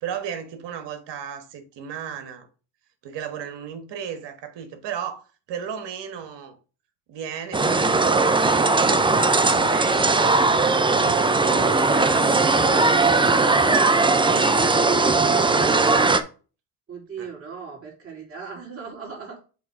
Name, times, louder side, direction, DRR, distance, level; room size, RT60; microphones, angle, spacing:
voice 1, 0.0-2.5 3.0-6.6 7.1-9.0 9.5-13.8 14.3-16.2 17.2-17.3, right 8 dB, 60° right, 1.6 m, -35 dB
sound 1, 7.5-16.2, right 3 dB, 10° right, 0.5 m, -19 dB
voice 2, 16.9-19.4, right 5 dB, 30° right, 3.4 m, -38 dB
6.9 x 3.2 x 4.7 m
supercardioid pair, 80°, 48 cm